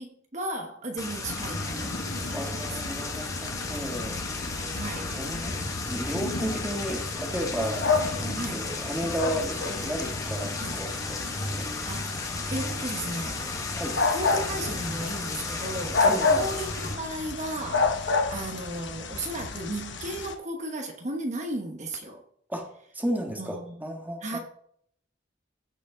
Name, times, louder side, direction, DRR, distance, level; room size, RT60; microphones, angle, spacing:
voice 1, 0.0-2.7 4.7-5.1 8.3-8.7 10.6-10.8 11.9-12.1 12.5-13.4 14.1-22.2 23.3-23.8 24.2-24.4, right 1 dB, 40° right, 3 dB, 1.1 m, -35 dB
sound 1, 1.0-16.9, left 3 dB, 20° left, 1.2 m, -34 dB
sound 2, 1.2-20.3, left 4 dB, 75° left, 1.0 m, -31 dB
voice 2, 2.3-4.6 5.2-5.5 5.8-7.8 8.1-11.7 13.7-14.0 16.0-16.6 22.5-22.7 22.9-24.4, right 1 dB, 10° right, 2 dB, 1.6 m, -33 dB
15.0 x 5.1 x 3.8 m, 0.66 s
head